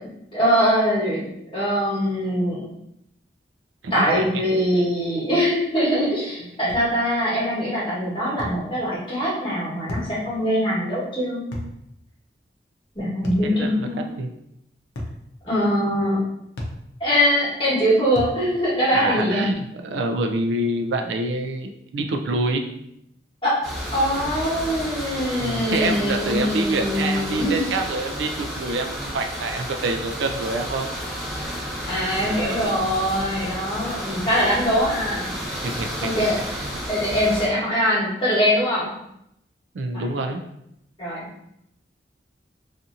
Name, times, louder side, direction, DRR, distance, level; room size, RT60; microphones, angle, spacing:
voice 1, 0.3-1.2 1.5-2.6 3.9-11.6 12.9-14.1 15.4-16.2 17.0-19.4 23.4-23.5 23.9-27.7 31.5-35.3 36.0-36.3 36.9-38.9 39.9-40.1 41.0-41.2, equal, 25° left, -8 dB, 1.1 m, -22 dB
sound 1, 6.7-6.9 8.4-8.6 9.9-10.1 11.5-11.8 13.2-13.5 15.0-15.2 16.6-16.8 18.2-18.4, left 1 dB, 80° left, 0.6 m, -32 dB
voice 2, 13.2-13.9 14.2-14.3 18.9-22.6 25.4-30.9 32.2-32.8 35.6-36.8 39.7-40.4, right 2 dB, 85° right, 5 dB, 0.3 m, -27 dB
sound 2, 23.6-37.5, equal, 15° right, 1.0 m, -32 dB
2.7 x 2.5 x 2.4 m, 0.79 s
head